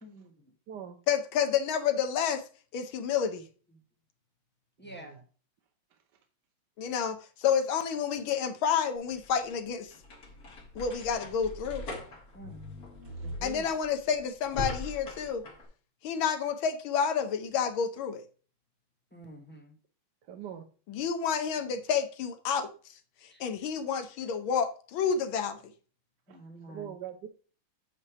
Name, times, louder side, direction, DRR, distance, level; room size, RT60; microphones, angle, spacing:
voice 1, 0.0-0.5 3.7-3.8 4.8-5.1 12.3-12.7 19.1-19.8 23.3-23.4 26.3-26.9, right 1 dB, 10° left, 2 dB, 0.6 m, -48 dB
voice 2, 1.1-2.4 2.7-3.4 6.8-9.9 10.8-11.8 13.4-15.4 16.0-18.2 20.9-22.7 23.4-25.6, left 7 dB, 75° left, 9 dB, 1.6 m, -29 dB
voice 3, 4.8-5.2 13.0-13.7 20.3-20.7 26.3-26.4 26.7-27.3, right 9 dB, 65° right, 5 dB, 1.2 m, -43 dB
sound 1, 9.0-15.7, left 2 dB, 50° left, 2.0 m, -41 dB
8.5 x 3.3 x 5.7 m, 0.39 s
omnidirectional pair, 2.3 m